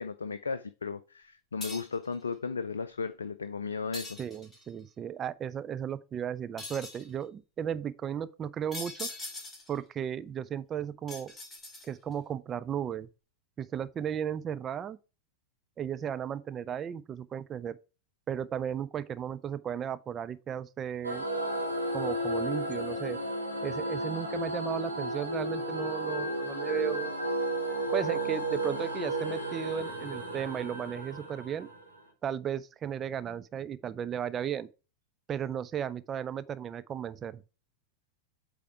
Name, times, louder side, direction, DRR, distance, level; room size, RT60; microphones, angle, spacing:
voice 1, 0.0-4.2, left 5 dB, 70° left, 0.4 m, -35 dB
sound 1, 1.6-2.1 3.9-4.7 6.6-7.1 8.7-9.8 11.1-12.1, left 2 dB, 15° left, 2.2 m, -41 dB
voice 2, 4.2-9.1 9.7-11.3 11.8-13.1 13.6-15.0 15.8-17.8 18.3-21.3 21.9-23.2 23.6-27.1 27.9-31.7 32.2-34.7 35.3-37.4, right 9 dB, 25° right, 0.5 m, -35 dB
sound 2, 21.0-32.0, right 1 dB, 90° right, 2.4 m, -33 dB
8.4 x 3.5 x 4.5 m
figure-of-eight pair, 90°, 0 cm